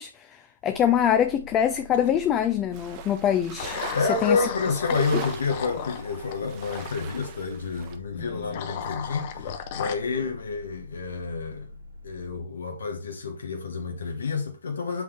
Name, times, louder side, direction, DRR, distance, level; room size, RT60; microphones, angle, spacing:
voice 1, 0.0-4.4, left 9 dB, 20° left, 0.5 m, -24 dB
sound 1, 0.7-12.4, left 1 dB, 80° right, 1.6 m, -45 dB
sound 2, 1.9-2.4 3.6-7.0 8.2-9.9, left 8 dB, 45° left, 1.0 m, -35 dB
sound 3, 2.7-8.0, right 7 dB, 35° right, 1.1 m, -42 dB
voice 2, 3.9-11.7 12.0-15.0, left 4 dB, 75° left, 1.4 m, -29 dB
8.0 x 3.6 x 3.4 m
hypercardioid pair, 135°, 0 cm